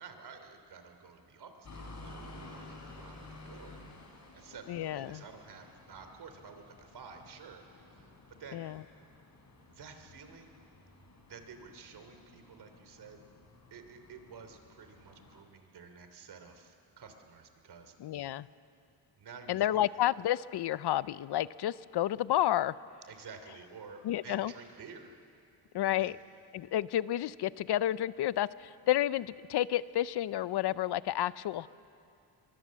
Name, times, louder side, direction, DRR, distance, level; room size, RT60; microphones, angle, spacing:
voice 1, 0.0-3.8 4.3-8.1 8.4-8.6 9.7-10.6 11.3-13.2 13.7-17.9 19.2-19.6 23.1-25.2 26.0-26.2, right 5 dB, 60° right, 7 dB, 3.0 m, -51 dB
sound 1, 1.6-15.4, left 2 dB, 40° left, 4.5 m, -53 dB
voice 2, 4.7-5.2 8.5-8.8 18.0-18.5 19.5-22.7 24.0-24.5 25.7-26.2 26.5-31.7, left 13 dB, 65° left, 18 dB, 0.6 m, -30 dB
26.5 x 23.5 x 7.5 m, 2.5 s
cardioid pair, 120°, 43 cm